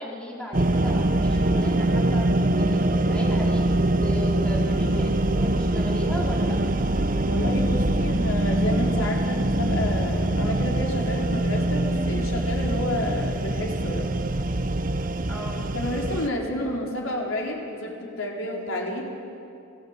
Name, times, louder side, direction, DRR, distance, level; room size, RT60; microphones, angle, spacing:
voice 1, 0.0-2.3 2.6-3.7 4.0-6.6 15.3-15.7, left 1 dB, 5° left, -4 dB, 3.8 m, -36 dB
sound 1, 0.5-16.3, right 1 dB, 40° right, 0.8 m, -23 dB
voice 2, 7.3-14.1 15.7-19.0, left 1 dB, 75° left, -1 dB, 4.7 m, -30 dB
29.0 x 17.5 x 8.4 m, 2.6 s
head